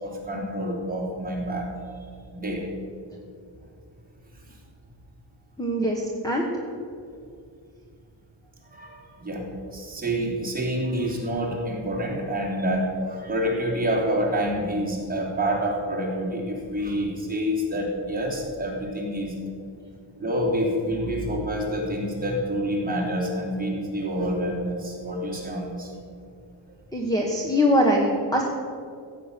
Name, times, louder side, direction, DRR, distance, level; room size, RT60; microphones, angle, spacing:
voice 1, 0.0-1.7 2.3-2.7 8.7-19.4 20.2-25.9, equal, 20° right, -3 dB, 3.0 m, -27 dB
voice 2, 5.6-6.5 26.9-28.4, equal, 10° left, -1 dB, 1.1 m, -22 dB
15.5 x 8.6 x 6.7 m, 2.4 s
wide cardioid pair, 175°, 45 cm